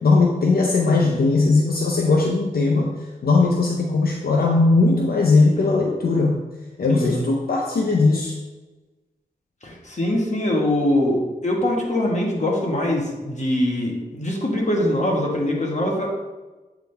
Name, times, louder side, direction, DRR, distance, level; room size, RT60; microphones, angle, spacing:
voice 1, 0.0-6.4 6.8-8.4, left 3 dB, 80° left, 0 dB, 0.7 m, -19 dB
voice 2, 6.9-7.3 9.6-16.1, left 1 dB, 50° left, -1 dB, 1.5 m, -23 dB
8.2 x 3.8 x 3.4 m, 1.2 s
wide cardioid pair, 65°, 16 cm